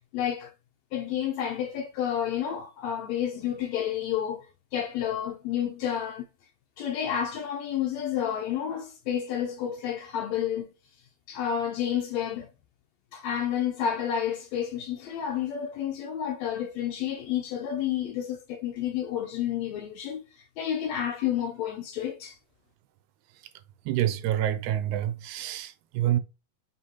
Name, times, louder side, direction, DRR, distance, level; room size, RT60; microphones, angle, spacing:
voice 1, 0.1-0.5 0.9-6.2 6.8-10.7 11.3-12.5 13.1-20.2 20.6-22.4, left 9 dB, 80° left, 1.6 m, -30 dB
voice 2, 23.9-26.2, right 12 dB, 80° right, 2.0 m, -27 dB
4.3 x 3.8 x 2.8 m
omnidirectional pair, 3.6 m